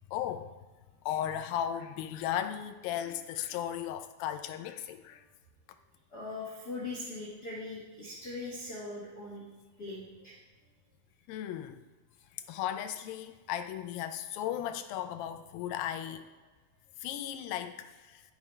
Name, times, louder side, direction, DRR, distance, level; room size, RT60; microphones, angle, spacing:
voice 1, 0.1-0.5 1.1-5.2 11.3-11.8 12.3-16.3 17.0-18.2, left 10 dB, 85° left, 2.4 m, -36 dB
voice 2, 6.1-9.4 9.8-10.4, left 2 dB, 50° left, 1.2 m, -41 dB
14.0 x 5.0 x 3.2 m
omnidirectional pair, 4.1 m